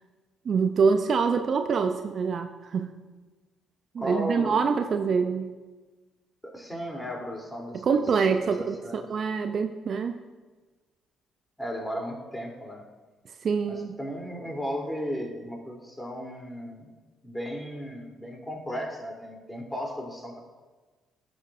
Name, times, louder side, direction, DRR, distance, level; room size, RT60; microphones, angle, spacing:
voice 1, 0.4-3.0 3.9-5.5 7.7-10.2 13.4-14.0, right 5 dB, 50° right, 8 dB, 0.5 m, -25 dB
voice 2, 4.0-4.6 6.4-8.0 8.4-9.0 11.6-12.9 13.7-16.9 17.2-20.4, equal, 10° left, -1 dB, 3.0 m, -35 dB
16.0 x 6.9 x 2.5 m, 1.3 s
hypercardioid pair, 45°, 0 cm